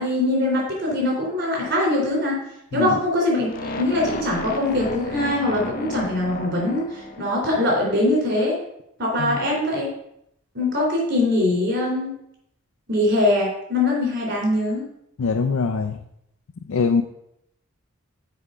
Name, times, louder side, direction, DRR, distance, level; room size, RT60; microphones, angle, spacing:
voice 1, 0.0-2.4 2.7-8.6 9.0-9.9 10.6-12.2 12.9-14.8, left 1 dB, 55° right, -2 dB, 3.3 m, -22 dB
sound 1, 3.5-7.6, left 2 dB, 45° left, 0.7 m, -33 dB
voice 2, 15.2-16.0 16.7-17.0, left 5 dB, 90° left, 5 dB, 0.5 m, -22 dB
7.0 x 4.9 x 5.5 m, 0.77 s
head